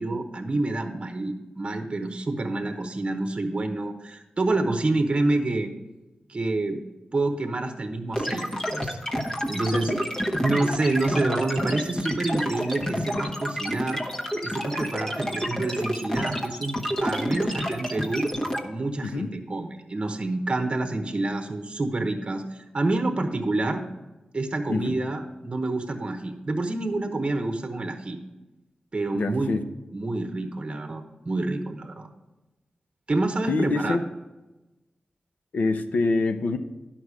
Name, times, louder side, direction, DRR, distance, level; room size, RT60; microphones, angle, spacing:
voice 1, 0.0-5.7 6.3-6.8 7.1-9.0 9.5-9.9 10.4-14.0 14.4-18.3 18.6-23.8 24.3-28.2 28.9-29.5 29.9-32.1 33.1-34.0, right 2 dB, 40° right, 5 dB, 1.0 m, -28 dB
sound 1, 8.1-18.6, equal, 25° left, 1.2 m, -29 dB
voice 2, 29.1-29.6 33.5-34.0 35.5-36.6, left 3 dB, 85° left, 8 dB, 0.7 m, -25 dB
11.5 x 5.9 x 4.8 m, 1.1 s
wide cardioid pair, 95°, 3 cm